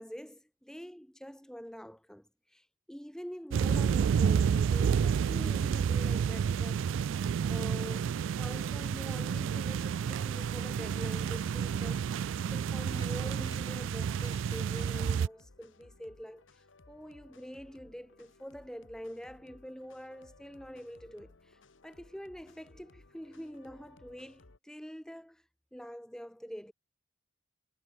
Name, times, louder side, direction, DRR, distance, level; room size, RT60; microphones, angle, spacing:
voice 1, 0.0-7.2 7.5-25.4 25.7-26.7, equal, 5° left, 1.6 m, -46 dB
sound 1, 3.5-15.3, right 7 dB, 80° right, 0.3 m, -30 dB
sound 2, 6.4-24.6, left 2 dB, 80° left, 1.4 m, -60 dB
sound 3, 12.7-13.6 14.0-14.9, left 4 dB, 20° left, 1.7 m, -56 dB
head